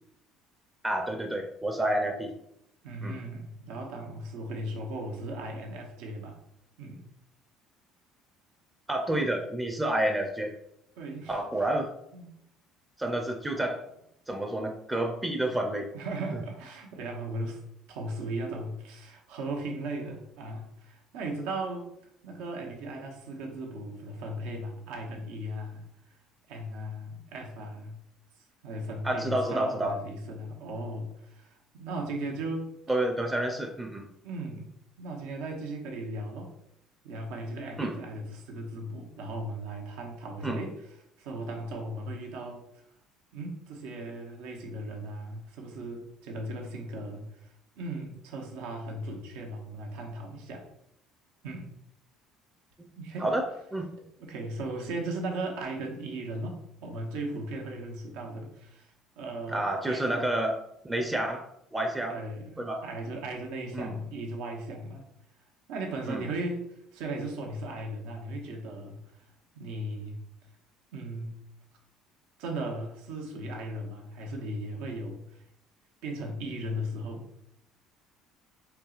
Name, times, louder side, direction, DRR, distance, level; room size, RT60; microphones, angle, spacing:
voice 1, 0.8-2.3 3.0-3.1 8.9-10.5 11.3-11.9 13.0-13.8 14.3-15.9 29.0-29.9 32.9-34.1 37.8-38.0 40.4-40.6 52.8-52.9 53.2-53.5 53.7-53.9 59.5-60.6 60.8-62.2 62.6-62.8 63.7-64.0 66.1-66.3, right 1 dB, 10° right, 2 dB, 0.4 m, -29 dB
voice 2, 2.8-6.4 6.8-7.0 11.0-11.4 12.1-12.3 15.9-17.6 17.9-21.9 22.2-25.9 26.5-27.9 28.6-32.7 34.2-34.7 35.0-36.5 37.0-42.8 43.3-50.6 51.4-51.7 53.0-53.4 54.3-60.3 62.1-65.1 65.7-69.2 69.5-70.2 70.9-71.4 72.4-75.4 76.0-77.3, right 1 dB, 85° right, 0 dB, 0.8 m, -37 dB
4.5 x 2.9 x 2.4 m, 0.77 s
cardioid pair, 115°, 0 cm